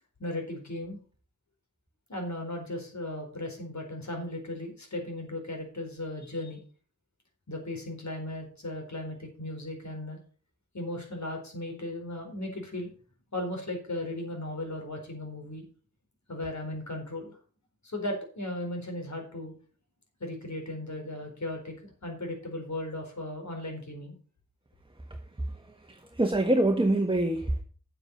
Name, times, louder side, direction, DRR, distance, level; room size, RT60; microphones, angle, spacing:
voice 1, 0.2-1.0 2.1-6.6 7.5-10.2 10.7-12.9 13.3-15.6 16.3-17.4 17.8-19.5 20.2-21.7 22.0-24.1, left 1 dB, 65° left, 2 dB, 4.4 m, -36 dB
voice 2, 25.9-27.6, right 1 dB, 15° right, 5 dB, 1.3 m, -25 dB
9.1 x 7.9 x 5.4 m, 0.40 s
wide cardioid pair, 55°, 30 cm